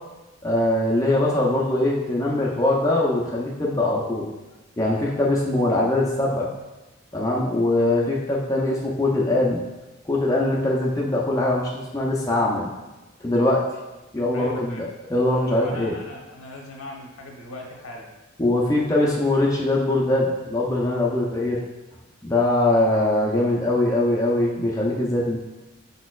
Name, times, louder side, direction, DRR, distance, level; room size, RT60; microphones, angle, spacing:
voice 1, 0.4-4.3 4.8-6.5 7.1-9.6 10.1-12.7 13.2-13.6 14.1-15.9 18.4-21.6 22.2-25.4, left 1 dB, 15° left, -4 dB, 0.5 m, -22 dB
voice 2, 14.3-14.8 15.4-18.1, left 1 dB, 80° left, -1 dB, 1.0 m, -38 dB
5.4 x 4.1 x 2.3 m, 1.1 s
head